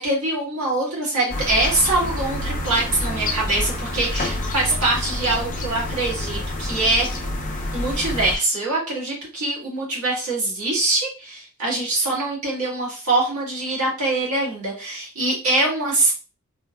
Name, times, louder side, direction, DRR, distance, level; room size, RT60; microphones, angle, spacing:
voice 1, 0.0-7.2 7.7-16.1, right 2 dB, 75° right, -4 dB, 1.7 m, -23 dB
sound 1, 1.3-8.4, left 1 dB, 35° left, 0.6 m, -28 dB
3.6 x 2.4 x 2.2 m, 0.34 s
head